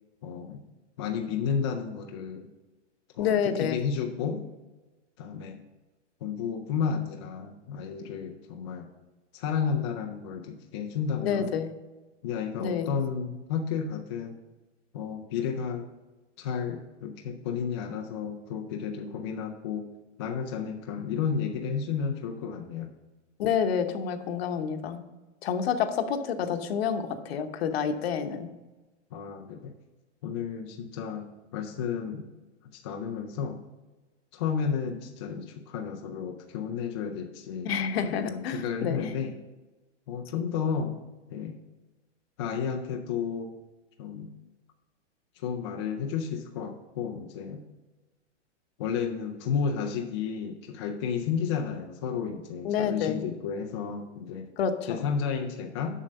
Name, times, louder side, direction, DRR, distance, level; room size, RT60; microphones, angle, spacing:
voice 1, 0.2-0.6 1.0-2.5 3.1-4.5 5.2-5.6 6.2-8.9 9.3-11.6 12.2-14.4 14.9-15.9 16.4-19.9 20.2-22.9 29.1-29.7 30.2-32.3 32.7-33.6 34.3-37.7 38.0-39.4 40.1-41.0 41.3-41.6 42.4-43.5 44.0-44.3 45.4-47.6 48.8-54.5 54.8-56.0, left 6 dB, 25° left, 2 dB, 0.4 m, -32 dB
voice 2, 3.2-3.8 11.2-11.7 12.6-12.9 23.4-25.0 25.4-28.5 37.6-39.1 52.6-53.2 54.6-55.0, left 7 dB, 55° left, 8 dB, 1.0 m, -28 dB
7.4 x 6.3 x 5.4 m, 1.1 s
hypercardioid pair, 160°, 37 cm